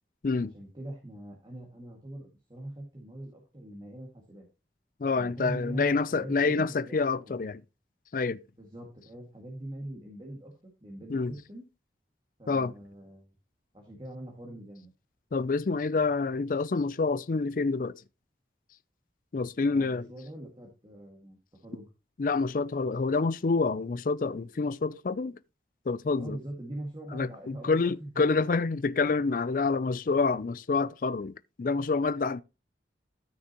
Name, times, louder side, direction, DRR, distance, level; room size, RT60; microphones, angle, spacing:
voice 1, 0.3-4.4 5.1-7.4 8.6-11.6 12.4-13.3 13.7-14.9 19.7-21.4 21.6-21.9 26.2-28.3, right 1 dB, 25° right, 1.9 m, -42 dB
voice 2, 5.0-7.6 8.1-8.4 11.1-11.3 12.5-12.7 15.3-18.0 19.3-20.1 22.2-25.4 25.9-26.4 27.1-32.4, left 4 dB, 50° left, 0.4 m, -27 dB
13.0 x 6.1 x 2.9 m
head